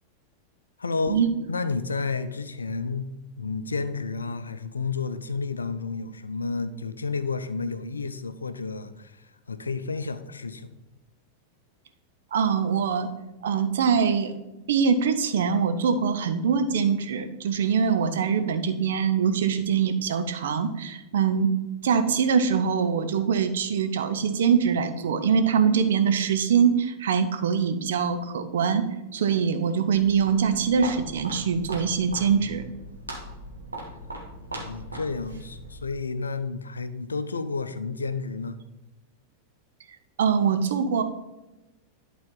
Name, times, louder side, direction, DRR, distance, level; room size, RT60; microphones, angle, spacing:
voice 1, 0.8-1.2 1.5-3.1 3.4-10.7 34.5-38.6, left 4 dB, 75° left, 12 dB, 0.5 m, -31 dB
voice 2, 12.3-13.1 13.4-14.3 14.7-21.5 21.8-28.8 29.1-32.6 40.2-41.0, right 6 dB, 60° right, 8 dB, 0.8 m, -23 dB
Walk footsteps, 29.9-36.0, right 1 dB, 80° right, 1.7 m, -39 dB
11.5 x 4.3 x 3.8 m, 1.0 s
figure-of-eight pair, 90°, 0 cm